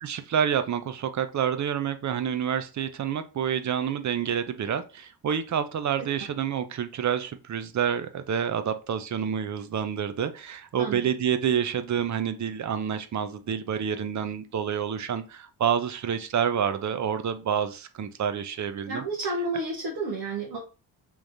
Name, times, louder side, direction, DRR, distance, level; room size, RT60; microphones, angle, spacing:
voice 1, 0.0-19.0, right 8 dB, 45° right, 0.6 m, -28 dB
voice 2, 18.9-20.6, right 2 dB, 65° right, 1.1 m, -30 dB
3.5 x 3.1 x 2.6 m
supercardioid pair, 55°, 43 cm